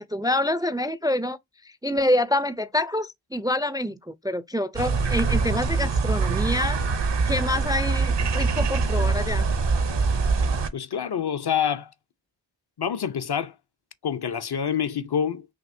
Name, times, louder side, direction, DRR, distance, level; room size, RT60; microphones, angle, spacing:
voice 1, 0.1-1.4 1.6-6.8 7.3-9.5, left 1 dB, 10° right, 0.3 m, -26 dB
sound 1, 4.8-10.7, right 4 dB, 65° right, 0.7 m, -24 dB
voice 2, 10.7-11.9 12.8-13.6 14.0-15.5, left 8 dB, 55° left, 0.5 m, -27 dB
5.7 x 2.7 x 2.5 m
wide cardioid pair, 40°, 46 cm